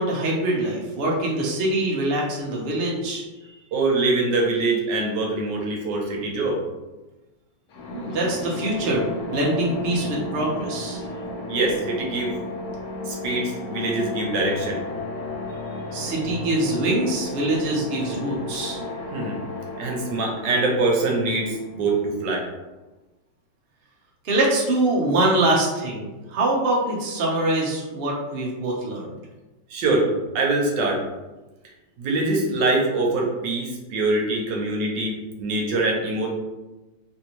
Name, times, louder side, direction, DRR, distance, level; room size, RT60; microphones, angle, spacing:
voice 1, 0.0-3.2 7.9-11.0 15.9-18.8 24.2-29.1, right 1 dB, 55° right, -3 dB, 0.7 m, -24 dB
voice 2, 3.7-6.6 11.5-12.4 13.1-14.8 19.1-19.4 19.8-22.4 29.7-30.1 30.3-31.0 32.0-36.3, right 2 dB, 75° right, -1 dB, 1.3 m, -24 dB
sound 1, 7.7-22.4, left 2 dB, 65° left, 1.1 m, -34 dB
3.3 x 2.6 x 2.9 m, 1.1 s
omnidirectional pair, 2.0 m